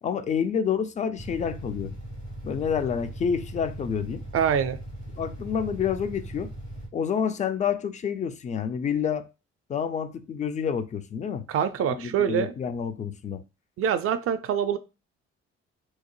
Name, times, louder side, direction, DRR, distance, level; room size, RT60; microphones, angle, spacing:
voice 1, 0.0-1.9 2.4-4.2 5.2-6.5 6.9-9.3 9.7-11.5 11.8-13.4, left 7 dB, 25° left, 0.4 m, -28 dB
sound 1, 1.2-6.9, right 1 dB, 80° left, 1.4 m, -39 dB
voice 2, 4.3-4.8 11.5-12.5 13.8-14.8, right 8 dB, 45° right, 0.4 m, -25 dB
2.8 x 2.1 x 3.0 m
hypercardioid pair, 50°, 32 cm